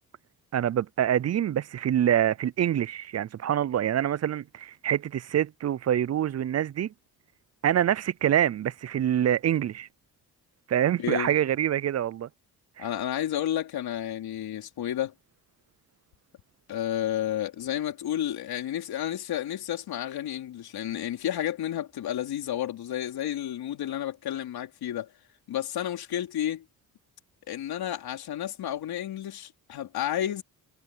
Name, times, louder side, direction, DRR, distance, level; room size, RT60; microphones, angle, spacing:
voice 1, 0.5-6.9 7.6-9.9 10.7-12.3 12.8-12.9, right 10 dB, 45° right, 0.5 m, -25 dB
voice 2, 11.0-11.3 12.8-15.1 16.7-25.1 25.5-26.6 27.5-30.4, left 11 dB, 80° left, 3.9 m, -31 dB
cardioid pair, 75°, 37 cm